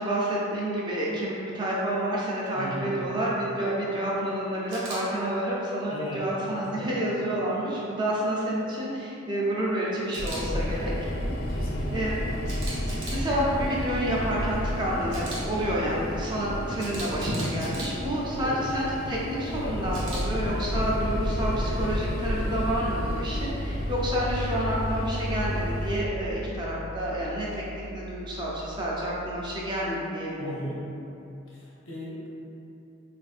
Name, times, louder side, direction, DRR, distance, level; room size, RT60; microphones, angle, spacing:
voice 1, 0.0-10.9 11.9-12.2 13.1-30.8, right 1 dB, 20° right, -5 dB, 0.5 m, -29 dB
voice 2, 2.5-3.0 5.9-6.2 6.8-6.9 11.5-12.1 18.4-18.6 30.4-30.8 31.5-32.3, equal, 80° left, -5 dB, 0.8 m, -37 dB
Camera, 4.7-5.0 10.1-10.4 12.5-13.2 15.1-15.4 16.8-17.9 19.9-20.2, right 2 dB, 65° right, 0.8 m, -38 dB
sound 1, 10.2-26.0, equal, 45° left, 0.4 m, -31 dB
Piano, 19.6-29.8, equal, 85° right, 0.3 m, -37 dB
4.0 x 2.5 x 2.5 m, 2.8 s
head